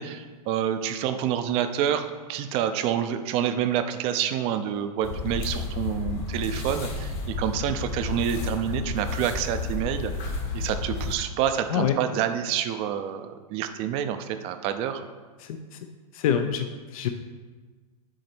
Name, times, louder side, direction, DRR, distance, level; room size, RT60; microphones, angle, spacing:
voice 1, 0.0-15.1, right 9 dB, 30° right, 9 dB, 0.4 m, -28 dB
sound 1, 5.0-11.2, left 4 dB, 40° left, 1.1 m, -31 dB
voice 2, 15.4-15.9 16.1-17.1, left 8 dB, 65° left, 7 dB, 0.5 m, -26 dB
6.3 x 3.9 x 4.4 m, 1.4 s
supercardioid pair, 145°, 19 cm